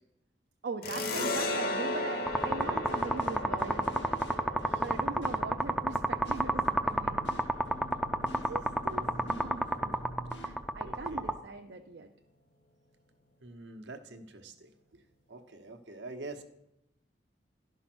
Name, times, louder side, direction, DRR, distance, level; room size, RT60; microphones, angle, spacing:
voice 1, 0.6-7.4 8.3-10.0 10.3-12.1, right 3 dB, 65° right, 4 dB, 0.5 m, -41 dB
sound 1, 0.8-8.0, left 2 dB, 55° left, 1.1 m, -37 dB
sound 2, 2.3-11.3, right 1 dB, ahead, 0.4 m, -29 dB
sound 3, 2.4-10.5, right 1 dB, 75° left, 1.2 m, -48 dB
voice 2, 10.8-11.3 13.4-15.0 15.3-16.4, right 2 dB, 80° right, 6 dB, 1.1 m, -46 dB
11.5 x 5.6 x 6.0 m, 0.85 s
head